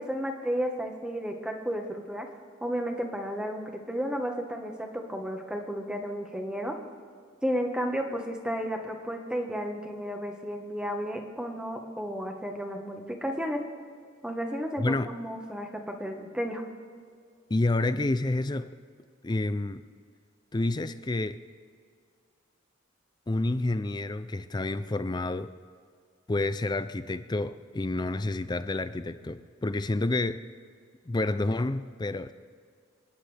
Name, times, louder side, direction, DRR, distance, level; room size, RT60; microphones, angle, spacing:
voice 1, 0.0-2.3 2.6-6.7 7.4-13.6 14.2-16.6, equal, 5° right, 3 dB, 1.3 m, -33 dB
voice 2, 14.8-15.1 17.5-18.7 19.2-19.8 20.5-21.4 23.3-25.5 26.3-30.4 31.1-32.3, left 2 dB, 20° left, 12 dB, 0.4 m, -29 dB
27.5 x 10.0 x 3.4 m, 2.1 s
head